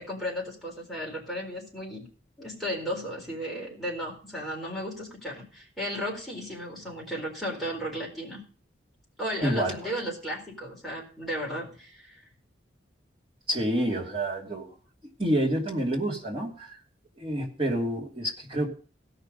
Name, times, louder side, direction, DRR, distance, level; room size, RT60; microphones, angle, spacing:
voice 1, 0.0-2.1 2.4-8.4 9.2-12.2, equal, ahead, -3 dB, 4.0 m, -34 dB
voice 2, 9.4-9.8 13.5-14.7 15.2-16.8 17.2-18.7, right 1 dB, 30° right, -2 dB, 2.8 m, -28 dB
17.0 x 5.9 x 5.3 m, 0.41 s
head